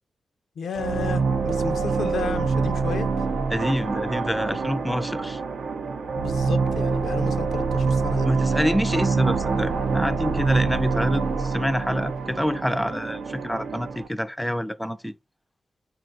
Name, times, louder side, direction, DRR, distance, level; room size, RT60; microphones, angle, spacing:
voice 1, 0.6-3.1 6.2-8.4, left 6 dB, 80° left, 0.4 m, -33 dB
sound 1, 0.7-14.1, right 4 dB, 75° right, 0.5 m, -26 dB
voice 2, 3.5-5.4 8.2-15.1, equal, 5° left, 0.3 m, -27 dB
4.0 x 2.3 x 3.8 m
cardioid pair, 50°, 0 cm